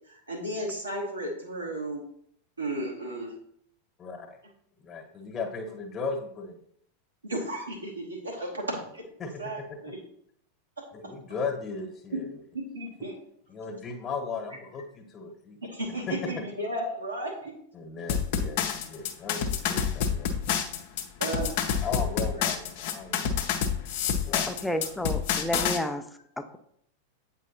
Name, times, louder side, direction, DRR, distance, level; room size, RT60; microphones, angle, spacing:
voice 1, 0.1-2.0 2.6-3.3 7.2-9.0 9.4-10.0 10.8-10.9 12.1-12.2 12.5-13.2 15.6-17.6 21.2-21.6 22.4-22.5, right 1 dB, 80° right, -3 dB, 1.1 m, -34 dB
voice 2, 4.8-6.6 9.2-9.9 10.9-12.4 13.5-15.6 16.1-16.4 17.7-20.3 21.8-23.3 23.9-24.5, left 4 dB, 25° left, 5 dB, 1.2 m, -36 dB
sound 1, 18.1-25.8, left 7 dB, 50° left, 0.7 m, -28 dB
voice 3, 24.5-26.0 26.4-26.6, left 1 dB, 5° left, 8 dB, 0.5 m, -31 dB
8.1 x 4.5 x 2.9 m, 0.68 s
figure-of-eight pair, 90°, 0 cm